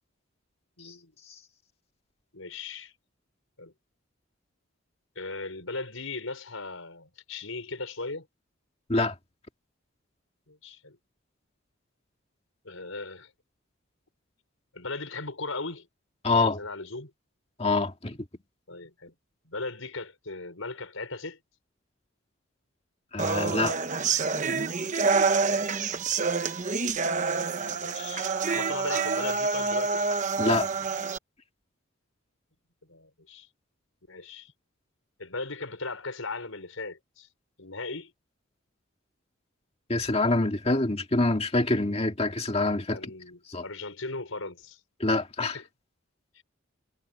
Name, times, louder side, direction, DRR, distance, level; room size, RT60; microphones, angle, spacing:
voice 1, 0.8-1.1 2.3-2.9 3.6-3.7 5.2-8.3 10.5-11.0 12.6-13.3 14.7-15.9 16.3-17.1 18.7-19.2 19.4-21.4 27.8-30.1 32.8-33.5 34.1-34.5 35.2-37.3 37.6-38.1 42.9-44.8 45.5-45.6 46.3-46.4, left 3 dB, 80° left, 5.4 m, -38 dB
voice 2, 16.2-16.6 17.6-18.2 23.1-23.8 30.4-30.7 39.9-43.0 43.5-43.6 45.0-45.6, left 2 dB, 30° left, 1.9 m, -25 dB
sound 1, 23.2-31.2, right 4 dB, 35° right, 1.0 m, -27 dB
head